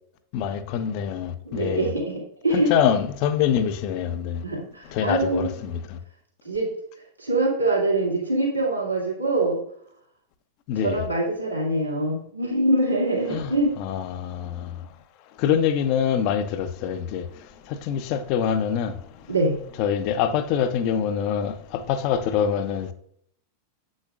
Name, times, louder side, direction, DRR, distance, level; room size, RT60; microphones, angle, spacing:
voice 1, 0.3-1.9 2.5-4.4 4.9-5.8 10.7-11.0 13.3-13.5 13.8-14.7 15.4-17.2 17.9-18.9 19.8-22.9, left 8 dB, 45° left, 0.7 m, -25 dB
voice 2, 1.4-2.7 4.4-5.6 6.4-6.7 7.2-9.6 10.8-13.8 19.3-19.6, right 2 dB, 85° right, 2.4 m, -24 dB
7.9 x 6.4 x 2.4 m
figure-of-eight pair, 90°, 0 cm